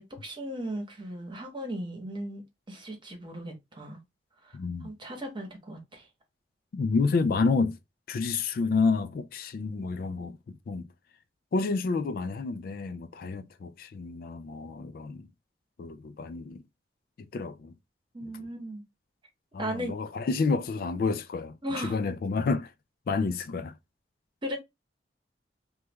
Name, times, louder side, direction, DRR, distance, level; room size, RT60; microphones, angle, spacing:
voice 1, 0.0-2.4 2.7-4.0 4.4-6.1 18.1-18.8 19.6-19.9 21.6-22.0 24.4-24.6, equal, 25° right, 0.9 m, -37 dB
voice 2, 4.5-4.9 6.7-7.8 8.1-10.9 11.5-15.3 15.8-16.6 17.3-17.7 18.2-18.3 19.5-22.7 23.1-23.7, left 4 dB, 55° left, 0.3 m, -29 dB
3.1 x 2.2 x 3.3 m
head